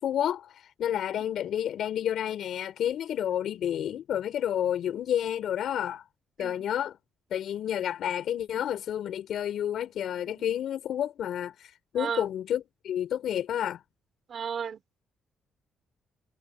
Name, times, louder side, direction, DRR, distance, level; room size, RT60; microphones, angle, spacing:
voice 1, 0.0-6.0 6.4-7.0 7.3-13.8, left 10 dB, 70° left, 5.6 m, -30 dB
voice 2, 12.0-12.3 14.3-15.0, right 7 dB, 50° right, 6.5 m, -35 dB
cardioid pair, 90°, 0 cm